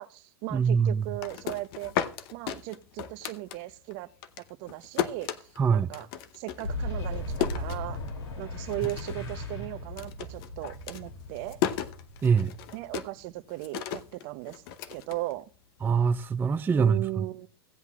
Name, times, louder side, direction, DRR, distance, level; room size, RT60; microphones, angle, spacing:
voice 1, 0.0-1.9 2.3-4.1 4.4-6.1 6.3-8.0 8.4-11.6 12.7-14.6 14.9-15.5 16.7-17.5, right 18 dB, 55° right, 0.7 m, -37 dB
voice 2, 0.5-1.0 5.6-5.9 12.2-12.5 15.8-17.2, right 6 dB, 15° right, 0.4 m, -24 dB
sound 1, 1.0-3.9 4.2-8.4 8.7-9.3 9.5-15.8, left 10 dB, 60° left, 0.8 m, -35 dB
Boom, 6.6-13.2, left 2 dB, 80° left, 2.7 m, -37 dB
17.5 x 8.1 x 2.3 m
hypercardioid pair, 105°, 13 cm